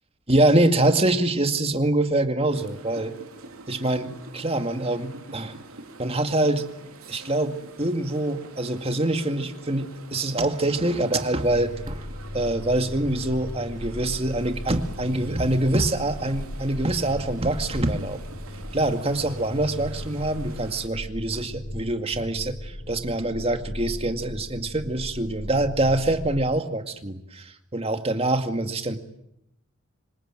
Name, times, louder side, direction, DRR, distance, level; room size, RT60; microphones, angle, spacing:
voice 1, 0.3-3.1 3.7-5.6 6.0-6.6 7.1-12.1 12.3-18.2 18.7-29.0, right 1 dB, 25° right, 7 dB, 2.1 m, -25 dB
sound 1, 2.5-20.9, right 2 dB, 75° right, 3.6 m, -46 dB
sound 2, 11.5-26.6, left 1 dB, 35° left, 1.3 m, -36 dB
26.5 x 24.5 x 9.1 m, 0.81 s
head